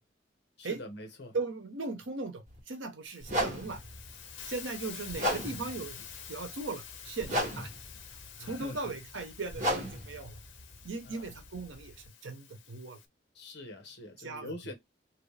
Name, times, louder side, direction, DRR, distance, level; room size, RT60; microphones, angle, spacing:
voice 1, 0.6-1.3 8.4-8.9 11.0-11.3 13.3-14.7, left 1 dB, 60° left, 1.0 m, -44 dB
voice 2, 1.3-3.8 4.4-7.7 8.4-10.4 10.8-13.0 14.2-14.7, right 3 dB, 85° right, 0.9 m, -38 dB
sound 1, 2.5-2.6 3.2-12.1, equal, 45° right, 1.5 m, -36 dB
Hiss, 3.1-13.1, left 8 dB, 85° left, 0.7 m, -48 dB
3.0 x 2.7 x 3.2 m
head